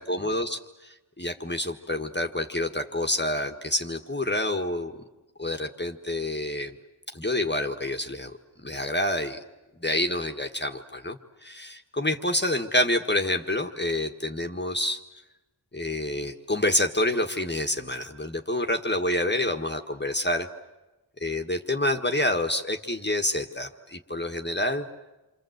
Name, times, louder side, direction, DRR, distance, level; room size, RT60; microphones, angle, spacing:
voice 1, 0.0-4.9 5.4-6.7 7.1-8.3 8.6-9.4 9.8-15.0 15.7-20.5 21.2-24.9, left 1 dB, 25° left, 4 dB, 1.6 m, -28 dB
28.0 x 26.0 x 8.0 m, 1.1 s
wide cardioid pair, 50°, 40 cm